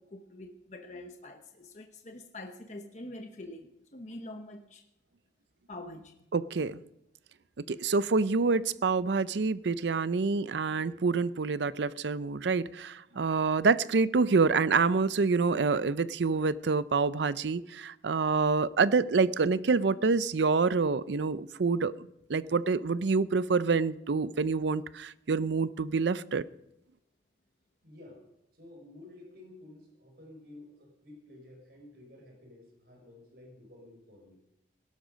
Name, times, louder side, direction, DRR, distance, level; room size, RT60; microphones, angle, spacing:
voice 1, 0.0-4.8 5.7-6.1 13.1-13.4, left 1 dB, 40° left, 5 dB, 0.9 m, -45 dB
voice 2, 6.3-6.8 7.6-21.9 22.3-26.5, right 4 dB, 80° right, 17 dB, 0.5 m, -27 dB
voice 3, 27.8-28.3 28.5-34.4, left 2 dB, 60° right, 1 dB, 5.1 m, -52 dB
17.5 x 12.0 x 5.2 m, 0.86 s
head